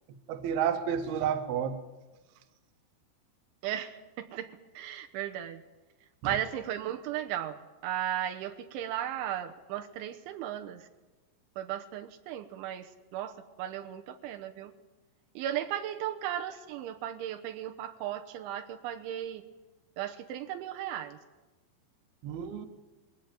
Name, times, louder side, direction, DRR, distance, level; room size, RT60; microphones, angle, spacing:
voice 1, 0.3-1.8 6.2-6.4 22.2-22.7, right 8 dB, 65° right, 7 dB, 3.0 m, -30 dB
voice 2, 3.6-4.5 4.7-5.6 6.2-10.9 11.6-14.7 15.4-19.4 20.0-21.2, right 11 dB, 80° right, 5 dB, 3.3 m, -36 dB
21.5 x 17.0 x 9.2 m, 1.2 s
omnidirectional pair, 5.5 m